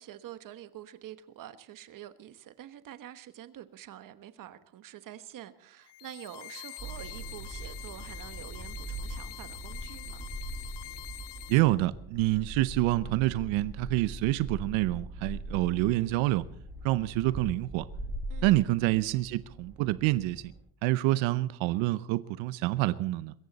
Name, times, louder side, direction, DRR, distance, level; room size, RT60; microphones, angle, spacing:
voice 1, 0.0-10.3 18.3-18.6, right 11 dB, 45° right, 1.2 m, -47 dB
sound 1, 5.8-11.6, left 16 dB, 65° left, 1.4 m, -45 dB
sound 2, 6.8-20.6, right 1 dB, 5° right, 7.5 m, -41 dB
voice 2, 11.5-16.4 16.8-17.9 18.4-20.5 20.8-23.3, right 17 dB, 90° right, 0.8 m, -27 dB
23.5 x 14.5 x 4.1 m
cardioid pair, 145°, 45 cm